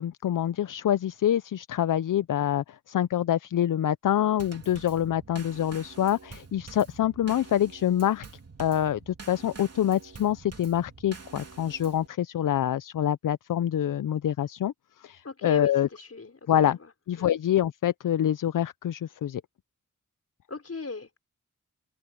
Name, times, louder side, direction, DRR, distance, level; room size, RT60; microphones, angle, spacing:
voice 1, 0.0-8.2 8.6-14.7 15.0-15.9 16.5-16.8 17.1-19.4, left 11 dB, 80° left, 0.5 m, -26 dB
Drum kit / Snare drum / Bass drum, 4.4-12.1, right 4 dB, 50° right, 3.1 m, -47 dB
voice 2, 15.2-16.9 17.2-17.3 20.5-21.2, left 3 dB, 50° left, 5.1 m, -38 dB
open air
cardioid pair, 55°, 31 cm